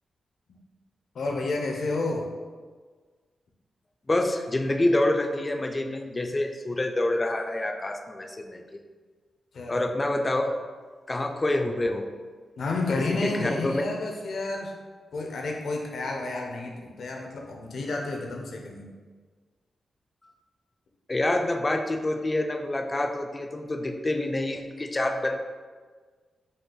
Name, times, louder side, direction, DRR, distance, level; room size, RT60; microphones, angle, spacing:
voice 1, 1.1-2.3 9.5-9.9 12.6-14.7 15.1-18.9, left 3 dB, 70° left, 1 dB, 0.6 m, -30 dB
voice 2, 4.1-8.8 9.7-10.5 11.1-12.1 13.1-13.8 21.1-25.4, left 1 dB, 25° left, 4 dB, 0.4 m, -27 dB
5.4 x 2.4 x 3.8 m, 1.5 s
wide cardioid pair, 105°, 0 cm